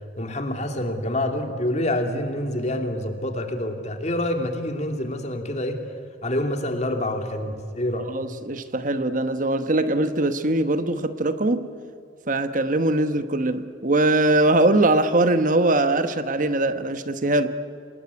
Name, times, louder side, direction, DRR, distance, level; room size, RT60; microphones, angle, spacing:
voice 1, 0.2-5.8 6.2-8.1, left 1 dB, 40° left, 5 dB, 2.8 m, -27 dB
voice 2, 8.0-11.7 12.3-17.5, right 2 dB, 45° right, 10 dB, 1.1 m, -21 dB
27.0 x 20.0 x 9.7 m, 2.4 s
head